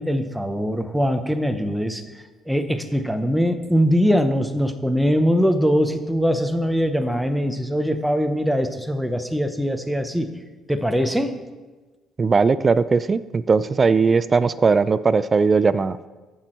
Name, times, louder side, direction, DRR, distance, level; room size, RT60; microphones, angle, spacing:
voice 1, 0.0-2.0 2.5-10.3 10.7-11.3, equal, ahead, 7 dB, 0.8 m, -22 dB
voice 2, 12.2-16.1, right 4 dB, 30° right, 16 dB, 0.3 m, -19 dB
14.5 x 6.1 x 4.4 m, 1.3 s
cardioid pair, 125°, 0 cm